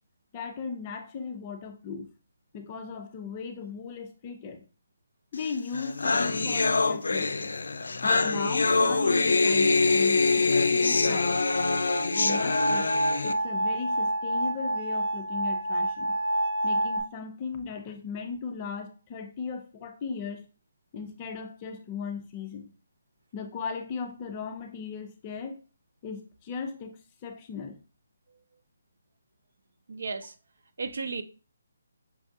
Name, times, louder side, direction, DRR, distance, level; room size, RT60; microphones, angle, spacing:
voice 1, 0.3-2.1 2.5-4.6 5.3-7.3 8.0-11.4 12.1-12.9 13.2-16.1 16.6-20.4 20.9-22.7 23.3-25.6 26.0-27.8, left 5 dB, 20° left, 0.5 m, -37 dB
sound 1, 5.5-5.6 5.7-13.3, left 3 dB, 85° left, 0.4 m, -24 dB
sound 2, 9.9-17.0, right 1 dB, 40° right, 1.5 m, -29 dB
voice 2, 29.9-30.3 30.8-31.2, right 4 dB, 60° right, 0.4 m, -34 dB
5.9 x 2.3 x 2.6 m
hypercardioid pair, 170°, 0 cm